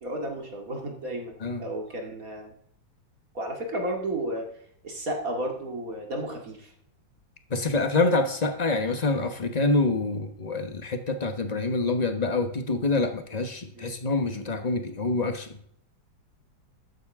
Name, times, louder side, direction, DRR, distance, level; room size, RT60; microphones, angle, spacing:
voice 1, 0.0-2.6 3.3-4.5 4.8-6.7 13.7-13.9, right 1 dB, 45° right, 1 dB, 2.6 m, -33 dB
voice 2, 7.5-15.5, left 3 dB, 30° left, 7 dB, 0.8 m, -26 dB
13.0 x 9.8 x 3.6 m, 0.67 s
omnidirectional pair, 2.2 m